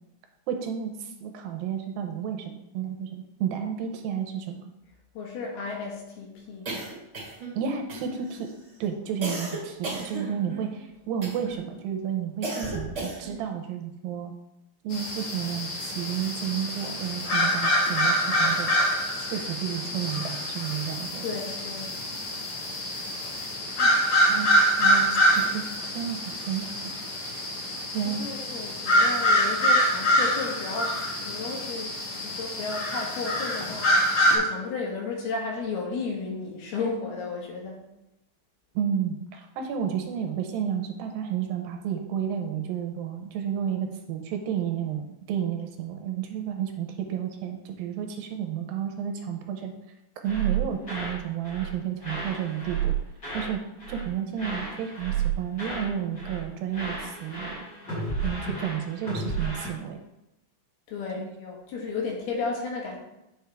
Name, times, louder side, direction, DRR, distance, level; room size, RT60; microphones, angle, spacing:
voice 1, 0.5-4.6 7.5-8.5 8.8-14.3 14.8-18.8 19.2-21.4 23.8-23.9 24.3-24.5 24.8-25.7 25.9-26.8 27.9-28.3 38.8-49.7 50.2-52.9 53.3-53.6 53.9-57.6 58.2-60.0 61.2-61.3, right 8 dB, 80° right, 4 dB, 2.4 m, -31 dB
voice 2, 5.2-6.7 21.2-21.9 28.2-32.0 32.2-33.9 34.3-37.8 58.1-58.3 60.9-63.0, left 4 dB, 85° left, -1 dB, 3.6 m, -33 dB
sound 1, 6.6-7.6 7.9-8.4 9.2-10.7 11.2-11.6 12.4-13.4, right 2 dB, 30° right, 1.4 m, -35 dB
sound 2, 14.9-34.4, equal, 55° left, 2.5 m, -25 dB
sound 3, 50.3-51.2 51.4-51.7 52.0-53.5 53.8-54.1 54.4-55.9 56.2-56.5 56.7-59.7, right 6 dB, 25° left, 3.0 m, -32 dB
9.1 x 5.3 x 3.5 m, 0.89 s
omnidirectional pair, 4.4 m